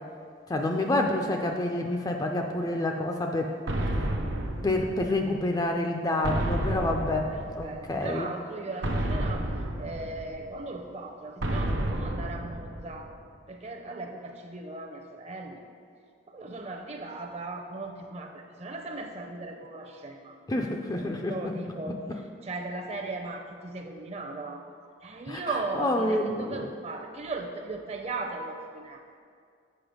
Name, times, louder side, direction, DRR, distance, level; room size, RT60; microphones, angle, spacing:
voice 1, 0.5-3.6 3.9-4.1 4.6-8.3 20.5-21.6 25.3-26.7, left 1 dB, 20° left, 3 dB, 0.4 m, -28 dB
sound 1, 3.7-5.4 6.2-8.0 8.8-10.6 11.4-13.2, right 1 dB, 70° right, 0.7 m, -31 dB
voice 2, 7.3-9.5 9.8-13.1 13.5-15.6 16.3-20.4 21.3-24.6 25.0-29.0, right 3 dB, 30° right, 3 dB, 0.6 m, -37 dB
7.8 x 5.3 x 5.1 m, 2.3 s
head